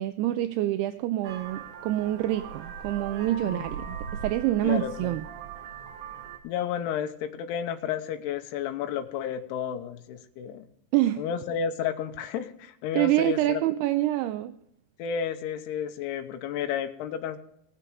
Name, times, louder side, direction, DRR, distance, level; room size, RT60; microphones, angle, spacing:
voice 1, 0.0-5.2 10.9-11.2 12.9-14.5, right 14 dB, 80° right, 10 dB, 2.5 m, -26 dB
Vehicle horn car horn honking, 1.2-6.4, right 7 dB, 60° right, 2.4 m, -39 dB
voice 2, 4.6-5.2 6.4-10.7 11.2-13.6 15.0-17.4, left 8 dB, 85° left, 7 dB, 2.9 m, -32 dB
18.5 x 6.8 x 4.8 m, 0.76 s
omnidirectional pair, 4.7 m